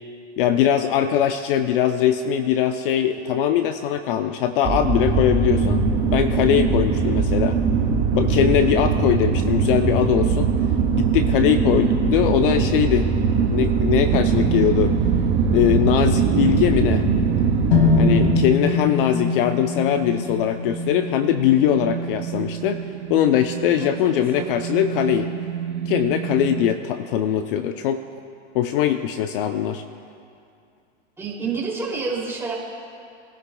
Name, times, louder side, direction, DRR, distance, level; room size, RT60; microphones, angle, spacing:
voice 1, 0.4-5.8 6.1-7.6 8.1-10.5 10.9-13.1 13.5-15.0 15.5-17.0 18.0-22.8 23.1-25.3 25.9-28.1 28.5-29.8, left 10 dB, 55° left, 8 dB, 0.6 m, -21 dB
sound 1, 4.6-18.4, right 5 dB, 25° right, 1.9 m, -21 dB
sound 2, 14.1-26.7, right 8 dB, 80° right, 0.9 m, -31 dB
sound 3, 17.7-21.7, left 5 dB, 70° left, 2.1 m, -22 dB
voice 2, 23.8-24.6 31.2-32.5, right 4 dB, 5° right, -5 dB, 2.8 m, -29 dB
22.0 x 11.5 x 2.3 m, 2.4 s
hypercardioid pair, 135°, 34 cm